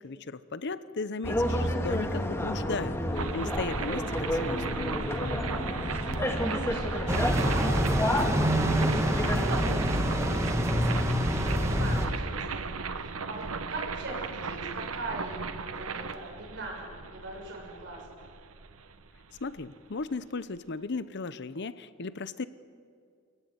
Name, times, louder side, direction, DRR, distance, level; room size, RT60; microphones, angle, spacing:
voice 1, 0.0-4.8 19.4-22.5, left 3 dB, 55° left, 15 dB, 0.8 m, -36 dB
sound 1, 1.2-9.4, left 1 dB, 10° left, 1.7 m, -30 dB
sound 2, 3.2-20.1, right 4 dB, 85° right, 1.1 m, -36 dB
voice 2, 5.2-8.8 9.1-18.2, right 2 dB, 60° right, 0 dB, 7.2 m, -41 dB
sound 3, 7.1-12.1, equal, 15° right, 2.0 m, -26 dB
26.5 x 15.5 x 9.5 m, 2.2 s
head